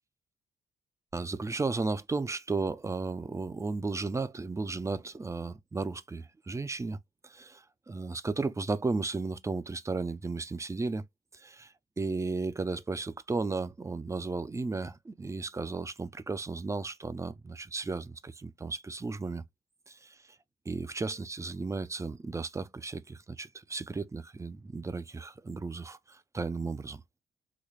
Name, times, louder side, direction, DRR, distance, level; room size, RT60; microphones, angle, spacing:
voice 1, 1.1-7.0 7.2-11.1 11.3-19.4 19.9-20.2 20.7-27.0, right 3 dB, 15° right, 0.4 m, -34 dB
4.0 x 2.2 x 3.1 m
cardioid pair, 90°, 20 cm